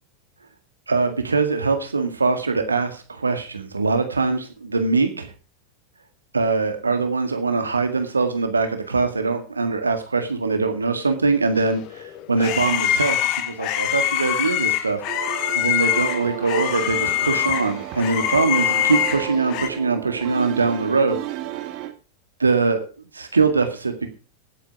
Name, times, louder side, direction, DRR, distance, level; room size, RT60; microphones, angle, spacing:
voice 1, 0.9-5.3 6.3-15.0 15.6-21.2 22.4-22.8 23.1-24.1, right 4 dB, 75° right, 7 dB, 1.9 m, -22 dB
sound 1, 11.8-19.7, left 12 dB, 40° left, 1.2 m, -24 dB
sound 2, 15.1-21.9, right 13 dB, 40° right, 2.0 m, -33 dB
16.0 x 9.2 x 4.9 m, 0.35 s
figure-of-eight pair, 90°, 0 cm